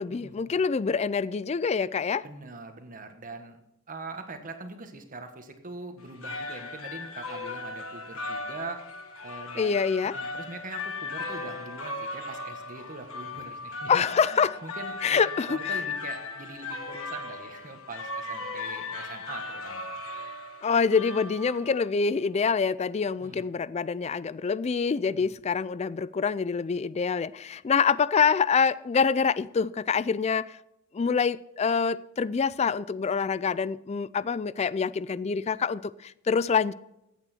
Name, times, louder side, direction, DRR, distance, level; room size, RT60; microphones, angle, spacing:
voice 1, 0.0-2.2 9.6-10.2 13.9-14.6 15.0-15.6 20.6-30.6 30.9-36.7, left 5 dB, 30° left, 0.3 m, -26 dB
voice 2, 2.2-3.6 3.9-8.8 9.2-9.8 10.1-20.0 23.2-23.5 25.2-25.3, right 3 dB, 40° right, 1.5 m, -42 dB
sound 1, 6.0-21.9, left 3 dB, 70° left, 1.5 m, -37 dB
15.5 x 9.0 x 4.4 m
head